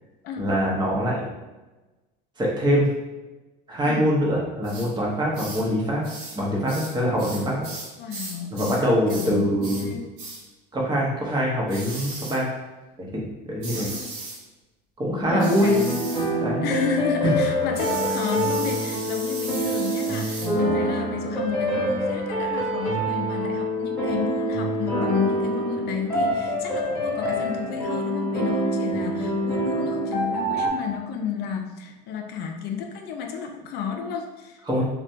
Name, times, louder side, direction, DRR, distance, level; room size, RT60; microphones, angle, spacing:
voice 1, 0.4-1.3 2.4-2.9 3.7-6.0 6.3-7.6 8.5-9.9 10.7-12.5 13.0-13.9 15.0-15.8 16.4-16.6 34.7-34.8, equal, 20° right, -3 dB, 0.9 m, -24 dB
sound 1, 4.6-4.9 5.3-5.7 6.0-6.4 6.7-8.8 9.1-9.3 9.6-9.9 10.2-10.4 11.7-12.4 13.6-14.4 15.4-16.3 17.7-20.5, right 3 dB, 80° right, 0.9 m, -37 dB
voice 2, 8.0-10.1 13.8-14.0 15.2-15.9 16.6-34.6, left 7 dB, 55° left, 4 dB, 0.4 m, -31 dB
sound 2, 15.3-30.7, right 1 dB, 10° left, 1.2 m, -26 dB
3.2 x 2.2 x 2.7 m, 1.1 s
supercardioid pair, 110°, 20 cm